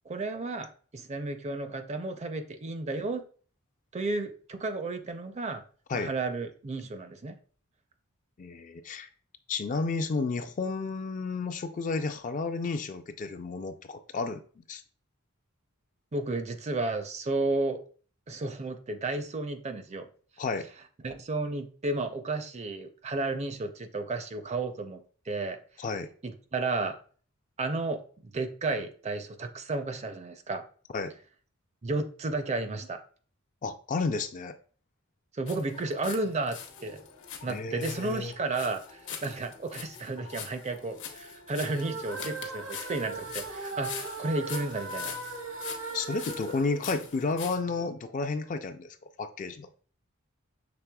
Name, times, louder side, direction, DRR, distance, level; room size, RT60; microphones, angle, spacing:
voice 1, 0.1-3.2 3.9-5.6 5.9-7.3 16.1-17.8 18.3-20.1 21.0-25.0 25.3-25.6 26.2-26.9 27.6-30.6 31.8-33.0 35.3-37.0 37.4-45.1, right 2 dB, 30° right, 8 dB, 0.5 m, -32 dB
voice 2, 8.4-9.1 9.5-14.4 14.7-14.8 20.4-20.7 25.8-26.1 30.9-31.1 33.6-34.5 37.5-38.3 45.9-49.7, left 4 dB, 40° left, 8 dB, 0.3 m, -32 dB
sound 1, 35.5-36.2 36.5-47.6, left 8 dB, 60° left, 0.8 m, -43 dB
sound 2, 35.7-47.9, left 2 dB, 80° left, 1.0 m, -53 dB
sound 3, 41.5-47.7, right 3 dB, 65° right, 0.8 m, -39 dB
6.0 x 3.4 x 2.2 m, 0.42 s
head